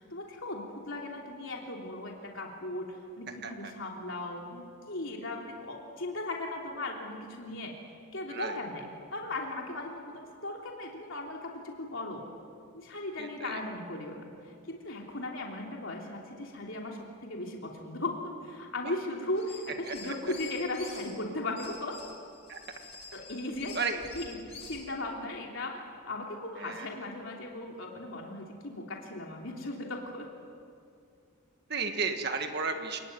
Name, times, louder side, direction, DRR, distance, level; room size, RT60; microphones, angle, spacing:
voice 1, 0.0-7.7 8.1-12.2 12.7-22.0 23.1-23.8 24.1-30.3, left 2 dB, 65° left, 0 dB, 3.3 m, -37 dB
voice 2, 13.2-13.6 19.9-20.1 22.5-22.6 23.7-24.0 26.6-26.9 31.7-33.0, right 4 dB, 45° right, 5 dB, 1.7 m, -33 dB
sound 1, 19.3-21.1 21.6-24.9, left 4 dB, 30° left, 4.0 m, -47 dB
29.0 x 19.5 x 9.4 m, 2.4 s
head